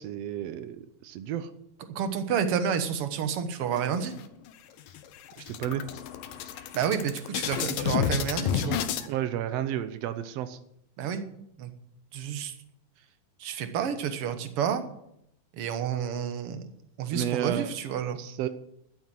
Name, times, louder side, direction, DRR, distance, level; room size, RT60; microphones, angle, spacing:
voice 1, 0.0-1.5 5.4-5.9 9.1-10.6 17.1-17.7 18.2-18.5, right 11 dB, 90° right, 11 dB, 1.4 m, -32 dB
voice 2, 1.9-4.1 6.7-8.8 11.0-11.3 11.6-11.7 12.1-12.5 13.4-14.8 15.5-16.6 17.0-18.2, right 7 dB, 60° right, 9 dB, 1.7 m, -29 dB
sound 1, 3.7-4.5 4.9-5.0 5.3-9.1, left 8 dB, 85° left, 2.7 m, -30 dB
12.0 x 9.0 x 7.6 m, 0.77 s
omnidirectional pair, 3.8 m